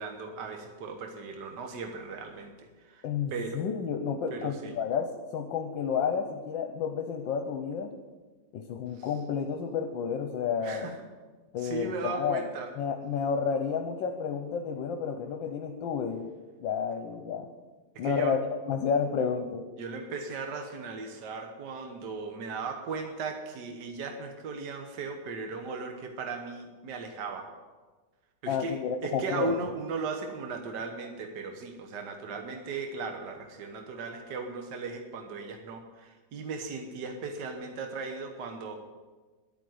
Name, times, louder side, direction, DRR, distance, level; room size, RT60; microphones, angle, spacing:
voice 1, 0.0-3.0 3.3-3.6 4.3-4.8 8.9-9.1 10.6-10.9 11.6-12.7 17.9-18.3 19.8-27.5 28.4-38.8, right 4 dB, 65° right, 4 dB, 1.7 m, -37 dB
voice 2, 3.0-7.9 8.5-10.9 11.5-12.4 12.8-16.3 16.6-17.5 18.0-18.4 18.7-19.6 28.5-29.5, left 6 dB, 75° left, 5 dB, 1.6 m, -31 dB
11.5 x 9.0 x 7.9 m, 1.3 s
omnidirectional pair, 2.1 m